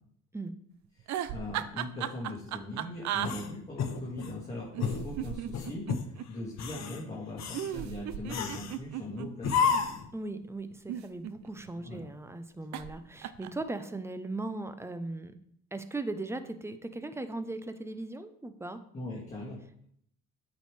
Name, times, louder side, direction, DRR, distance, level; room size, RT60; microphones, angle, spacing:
voice 1, 1.0-5.9 6.3-9.9 11.7-12.0 18.9-19.9, left 1 dB, 20° left, -6 dB, 1.9 m, -40 dB
sound 1, 1.0-3.3 4.7-6.3 7.5-9.9 10.7-11.7 12.7-13.0 13.2-13.6, right 11 dB, 65° right, 0.5 m, -36 dB
sound 2, 3.2-4.4 4.8-5.1 5.5-6.1 6.5-7.0 7.4-7.7 8.3-8.8 9.4-10.1, left 6 dB, 60° left, 0.9 m, -31 dB
voice 2, 10.1-15.3 15.7-18.8, right 2 dB, 10° right, 10 dB, 0.6 m, -38 dB
8.2 x 5.3 x 3.3 m, 0.69 s
cardioid pair, 90°, 30 cm